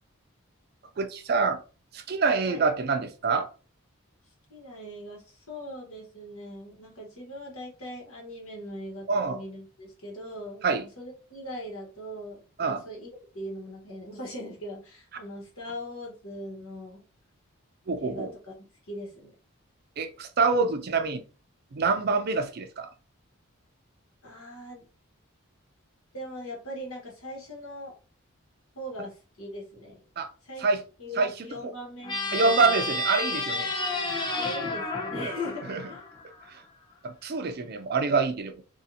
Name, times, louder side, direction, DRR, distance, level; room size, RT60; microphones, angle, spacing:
voice 1, 1.0-1.6 1.9-3.5 9.1-9.4 10.6-10.8 12.6-12.8 17.9-18.3 20.0-21.2 21.7-22.9 30.2-30.3 30.6-30.8 31.2-31.7 32.3-33.7 35.2-35.3 35.7-35.8 37.0-38.5, right 4 dB, 45° right, 0.4 m, -26 dB
voice 2, 4.5-17.0 18.0-19.3 24.2-24.9 26.1-28.0 28.7-30.0 30.4-30.6 31.0-32.8 34.3-36.0, equal, 80° left, 1.3 m, -40 dB
sound 1, 32.0-36.5, left 2 dB, 20° left, 0.4 m, -31 dB
2.5 x 2.5 x 2.7 m
head